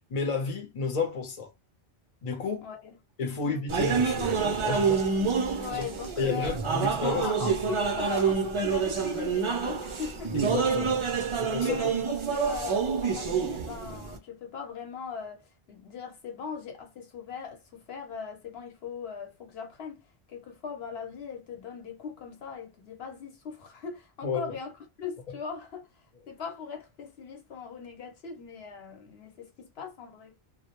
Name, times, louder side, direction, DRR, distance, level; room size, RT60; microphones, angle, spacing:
voice 1, 0.1-1.5 2.2-2.7 3.2-5.1 5.5-5.9 6.2-7.3 10.5-11.0 11.4-11.9 24.2-24.5, left 5 dB, 45° left, 0.7 m, -31 dB
voice 2, 2.6-3.0 3.2-3.5 5.6-6.6 7.0-10.5 11.3-11.4 11.7-20.0 20.3-24.7 25.0-30.4, left 6 dB, 75° left, 1.0 m, -40 dB
sound 1, 3.7-14.2, right 5 dB, 50° right, 0.3 m, -27 dB
2.2 x 2.0 x 2.8 m
omnidirectional pair, 1.1 m